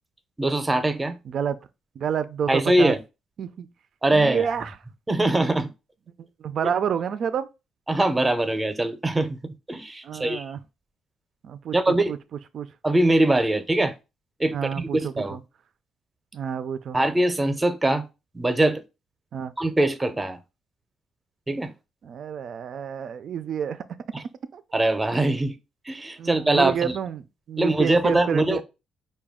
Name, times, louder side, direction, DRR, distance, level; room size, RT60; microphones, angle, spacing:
voice 1, 0.4-1.2 2.5-3.0 4.0-4.5 5.1-5.7 7.9-10.4 11.7-12.1 12.8-13.9 14.4-15.4 16.9-18.0 18.3-18.8 19.6-20.4 21.5-21.7 24.1-24.2 24.7-25.6 25.9-26.9 27.6-28.6, right 1 dB, 15° right, 0.6 m, -22 dB
voice 2, 1.3-1.6 2.0-2.9 3.4-3.7 4.1-4.8 6.4-7.5 10.0-10.6 11.4-12.2 12.5-12.7 14.5-15.4 16.3-17.0 19.3-19.5 22.0-23.8 24.5-24.6 26.2-28.6, right 8 dB, 60° right, 0.3 m, -29 dB
4.8 x 2.2 x 3.5 m
cardioid pair, 90°, 0 cm